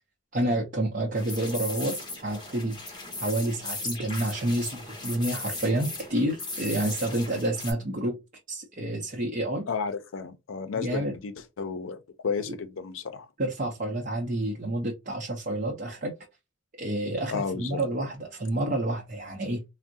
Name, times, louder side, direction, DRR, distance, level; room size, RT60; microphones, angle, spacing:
voice 1, 0.3-2.8 3.2-8.2 8.5-9.7 10.8-11.1 13.4-16.1 16.8-19.6, right 1 dB, 40° right, 0.6 m, -29 dB
sound 1, 1.1-7.7, left 3 dB, 20° left, 1.0 m, -37 dB
voice 2, 9.7-12.0 12.2-13.3 17.3-17.8, left 5 dB, 75° left, 0.5 m, -32 dB
3.4 x 2.0 x 2.6 m
head